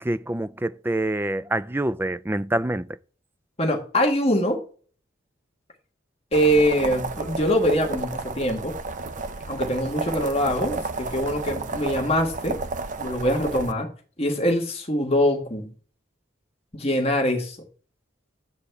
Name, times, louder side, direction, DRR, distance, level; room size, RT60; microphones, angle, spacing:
voice 1, 0.0-2.9, right 1 dB, 10° right, 0.4 m, -26 dB
voice 2, 3.6-4.6 6.3-8.7 9.5-12.6 13.0-13.9 14.2-15.7 16.7-17.6, equal, 30° left, 1.9 m, -23 dB
sound 1, 6.3-13.7, right 3 dB, 40° right, 0.7 m, -32 dB
12.5 x 4.2 x 8.2 m
head